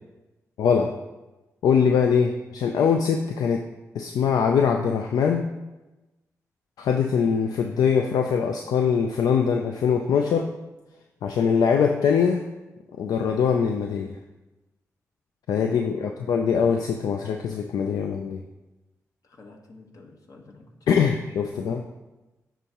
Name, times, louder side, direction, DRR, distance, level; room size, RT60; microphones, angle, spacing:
voice 1, 0.6-0.9 1.6-3.6 3.9-5.5 6.8-10.5 11.2-12.4 13.0-14.1 15.5-18.4 20.9-21.9, left 6 dB, 85° left, 4 dB, 0.3 m, -22 dB
voice 2, 15.8-16.2 19.2-21.0, left 2 dB, 65° left, 2 dB, 1.1 m, -49 dB
10.5 x 3.6 x 2.9 m, 1.1 s
supercardioid pair, 45°, 6 cm